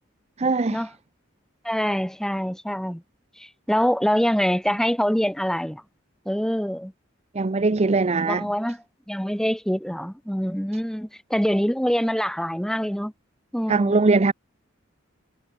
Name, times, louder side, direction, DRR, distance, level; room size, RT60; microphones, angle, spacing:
voice 1, 0.4-0.8 7.3-8.5 13.7-14.3, right 3 dB, 35° right, 0.6 m, -21 dB
voice 2, 1.6-3.0 3.4-5.8 6.2-6.9 8.2-13.1 13.5-14.0, equal, 5° left, 3.1 m, -25 dB
head